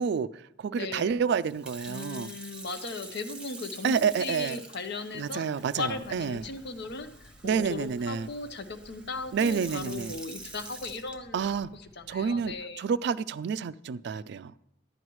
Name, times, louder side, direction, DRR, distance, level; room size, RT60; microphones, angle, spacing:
voice 1, 0.0-2.3 3.8-4.6 5.1-6.5 7.4-8.3 9.3-10.2 11.3-11.7 12.1-14.5, right 6 dB, 65° right, 16 dB, 0.3 m, -29 dB
voice 2, 0.7-1.2 1.9-5.4 5.8-11.5 12.0-12.8, left 3 dB, 65° left, 9 dB, 0.8 m, -37 dB
Sink (filling or washing) / Fill (with liquid), 1.4-11.7 12.3-12.6, right 2 dB, 5° right, 1.1 m, -47 dB
sound 1, 5.7-12.6, equal, 30° left, 0.8 m, -56 dB
11.5 x 9.6 x 3.1 m, 0.77 s
head